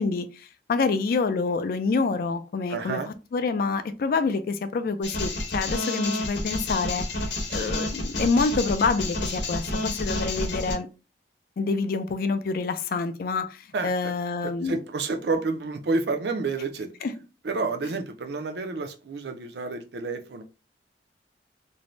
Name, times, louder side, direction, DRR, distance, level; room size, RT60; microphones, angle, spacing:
voice 1, 0.0-7.0 7.5-10.9 11.6-14.8 17.0-17.1, left 4 dB, 55° left, 0.3 m, -27 dB
voice 2, 2.7-3.1 7.5-7.8 13.7-14.1 14.4-16.9 17.4-20.4, right 3 dB, 65° right, 0.4 m, -30 dB
sound 1, 5.0-10.7, left 1 dB, 80° left, 0.8 m, -30 dB
2.6 x 2.1 x 3.0 m
head